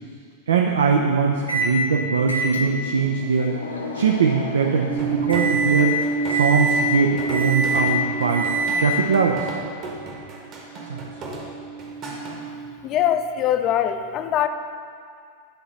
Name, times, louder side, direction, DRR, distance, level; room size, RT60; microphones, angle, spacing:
voice 1, 0.5-3.6 3.9-8.4 8.8-9.5 10.9-11.1, right 5 dB, 65° right, 1 dB, 0.5 m, -21 dB
Microwave oven, 1.5-1.8 2.3-9.1, equal, 80° left, 0.7 m, -26 dB
sound 1, 4.9-12.7, right 6 dB, 20° right, 0.7 m, -30 dB
sound 2, 5.0-12.4, right 2 dB, 35° right, 1.3 m, -36 dB
voice 2, 12.8-14.5, left 10 dB, 35° left, 8 dB, 0.4 m, -22 dB
9.1 x 3.9 x 5.2 m, 2.2 s
figure-of-eight pair, 90°, 0 cm